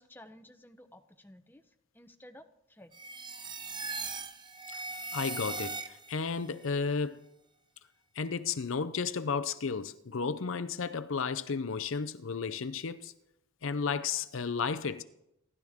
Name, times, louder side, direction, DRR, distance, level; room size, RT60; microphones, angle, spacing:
voice 1, 0.0-2.9, left 1 dB, 10° left, 0.8 m, -54 dB
sound 1, 2.9-6.3, right 3 dB, 20° right, 0.9 m, -39 dB
voice 2, 5.1-7.3 8.2-13.1 13.6-15.0, left 5 dB, 70° left, 0.6 m, -33 dB
28.0 x 12.0 x 3.6 m
head